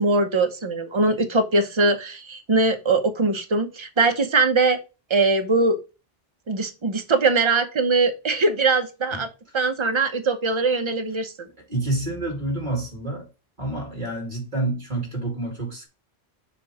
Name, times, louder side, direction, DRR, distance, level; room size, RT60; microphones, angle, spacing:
voice 1, 0.0-4.8 5.1-5.8 6.5-9.3 9.5-11.3, right 3 dB, 30° right, 0.8 m, -21 dB
voice 2, 11.7-13.3 13.6-15.9, right 2 dB, 45° right, 2.5 m, -28 dB
7.0 x 3.0 x 4.8 m
omnidirectional pair, 1.1 m